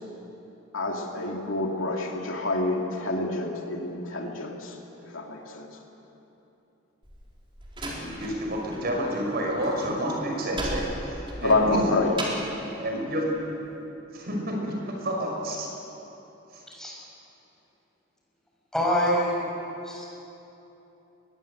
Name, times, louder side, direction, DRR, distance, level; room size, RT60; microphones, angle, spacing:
voice 1, 0.7-4.7 5.0-5.7 11.4-12.4, left 2 dB, 75° left, 1 dB, 2.7 m, -27 dB
Slam, 7.0-8.8 9.1-12.6, right 1 dB, 25° right, 4.1 m, -36 dB
voice 2, 7.8-11.9 12.8-13.2 14.1-15.7 16.5-16.6, equal, 50° right, 0 dB, 5.5 m, -30 dB
voice 3, 18.7-19.4 19.8-20.1, equal, 5° left, -4 dB, 6.3 m, -25 dB
22.5 x 21.0 x 8.1 m, 3.0 s
head